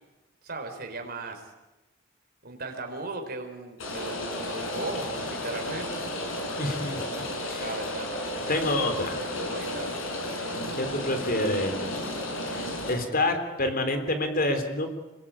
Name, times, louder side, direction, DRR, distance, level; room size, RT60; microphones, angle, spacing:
voice 1, 0.4-1.4 2.4-6.1 7.6-8.1 9.5-10.0, right 2 dB, 45° right, 4 dB, 4.7 m, -37 dB
Rain, 3.8-12.9, left 1 dB, 70° left, 6.5 m, -33 dB
voice 2, 6.6-7.1 7.5-7.7 8.5-9.2 10.8-11.9 12.5-14.9, left 1 dB, 45° left, 7 dB, 3.5 m, -28 dB
27.0 x 22.5 x 8.8 m, 1.1 s
head